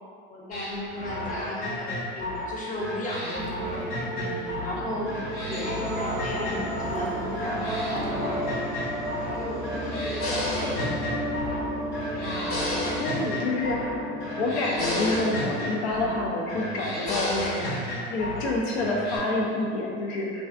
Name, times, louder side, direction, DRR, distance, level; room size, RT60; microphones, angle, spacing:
voice 1, 0.3-5.1 5.5-8.9 9.3-10.9, left 1 dB, 25° left, -4 dB, 0.6 m, -35 dB
sound 1, 0.5-4.8 5.1-7.0 7.3-9.4 9.6-11.7 11.9-13.9 14.2-16.2 16.5-18.5 18.8-19.2, left 1 dB, 55° left, 0.8 m, -33 dB
sound 2, 3.3-16.3, equal, 30° right, 0.4 m, -33 dB
voice 2, 12.2-14.1 14.4-20.4, left 2 dB, 80° left, -2 dB, 0.5 m, -28 dB
2.4 x 2.3 x 2.4 m, 2.3 s
hypercardioid pair, 80°, 32 cm